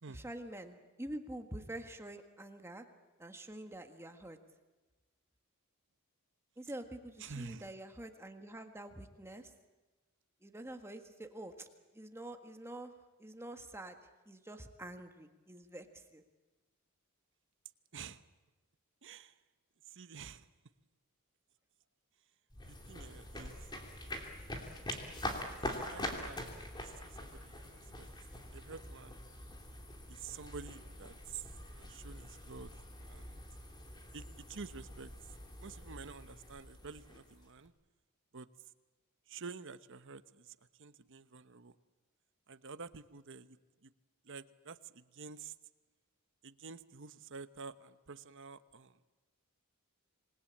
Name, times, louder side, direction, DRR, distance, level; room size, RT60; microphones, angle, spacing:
voice 1, 0.1-2.8 3.2-4.4 6.6-9.5 10.4-11.7 11.9-12.9 13.2-13.9 14.2-16.2, right 1 dB, 10° right, 5 dB, 1.6 m, -47 dB
voice 2, 7.2-7.8 17.9-18.2 19.0-19.4 19.9-20.5 22.7-23.6 25.8-26.5 26.8-28.1 28.5-29.2 30.1-31.5 31.7-32.7 33.1-33.4 34.1-35.1 35.6-37.7 38.3-38.5 39.3-41.8 42.5-43.9 44.2-45.5 46.4-49.0, right 5 dB, 60° right, 12 dB, 1.0 m, -49 dB
sound 1, 22.5-37.7, left 1 dB, 20° left, 3.0 m, -45 dB
26.5 x 20.5 x 8.7 m, 1.2 s
head